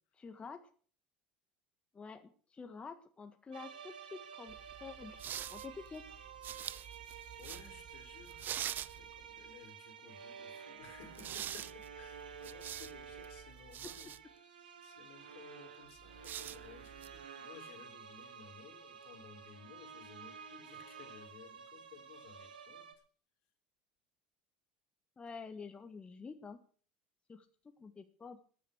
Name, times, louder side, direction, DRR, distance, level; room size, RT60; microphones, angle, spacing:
voice 1, 0.2-0.6 1.9-5.2 5.5-6.2 25.2-26.6 27.3-27.5 27.8-28.4, left 5 dB, 25° left, 6 dB, 1.6 m, -48 dB
sound 1, 3.5-22.9, right 7 dB, 90° right, 2.1 m, -51 dB
sound 2, 4.5-9.5 11.0-14.2 16.0-17.2, right 10 dB, 45° right, 0.6 m, -46 dB
voice 2, 7.4-14.5 14.8-22.9, left 8 dB, 65° left, 6 dB, 3.4 m, -57 dB
15.0 x 10.5 x 6.3 m, 0.43 s
hypercardioid pair, 80°, 5 cm